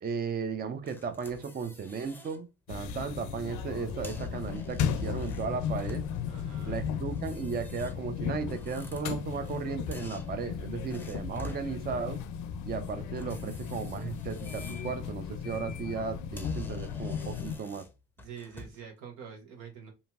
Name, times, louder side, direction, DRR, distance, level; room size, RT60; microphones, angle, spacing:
voice 1, 0.0-6.1 6.7-12.2 12.7-17.9, right 5 dB, 30° right, 0.5 m, -35 dB
sound 1, 0.9-2.4 2.8-3.1 3.8-6.4 7.1-9.6 9.9-11.7 13.1-14.9 15.3-15.6 16.0-16.1 16.4-18.9, left 2 dB, 5° left, 0.6 m, -50 dB
sound 2, 2.7-17.6, left 7 dB, 75° left, 0.5 m, -36 dB
voice 2, 6.3-6.8 18.2-19.9, right 7 dB, 85° right, 1.0 m, -46 dB
2.7 x 2.7 x 2.4 m
supercardioid pair, 60°, 30 cm